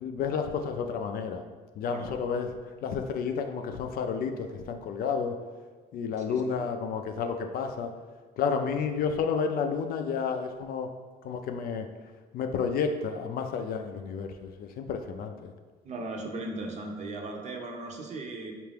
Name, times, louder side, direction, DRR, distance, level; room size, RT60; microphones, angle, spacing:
voice 1, 0.0-1.4 1.8-2.5 2.8-5.4 5.9-7.9 8.4-10.9 11.2-11.9 12.3-15.5, left 6 dB, 60° left, 6 dB, 0.4 m, -31 dB
voice 2, 15.8-18.5, right 2 dB, 45° right, 2 dB, 0.6 m, -37 dB
4.5 x 2.5 x 3.4 m, 1.4 s
cardioid pair, 110°, 17 cm